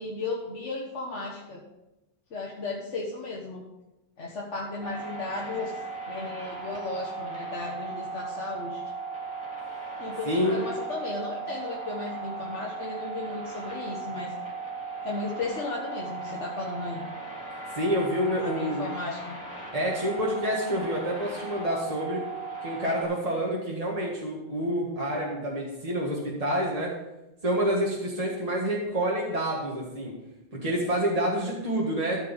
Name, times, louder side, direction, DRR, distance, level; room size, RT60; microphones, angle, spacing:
voice 1, 0.0-1.6 2.3-3.6 4.2-5.7 6.1-8.8 10.0-14.3 15.0-17.0 18.4-19.4, left 3 dB, 85° left, -3 dB, 1.7 m, -35 dB
sound 1, 4.8-23.0, right 4 dB, 5° right, 3.0 m, -37 dB
voice 2, 10.2-10.6 17.7-18.9 19.7-22.2 22.6-26.9 27.4-30.1 30.6-32.2, equal, 35° right, -4 dB, 1.9 m, -28 dB
14.0 x 5.4 x 5.4 m, 0.97 s
omnidirectional pair, 1.2 m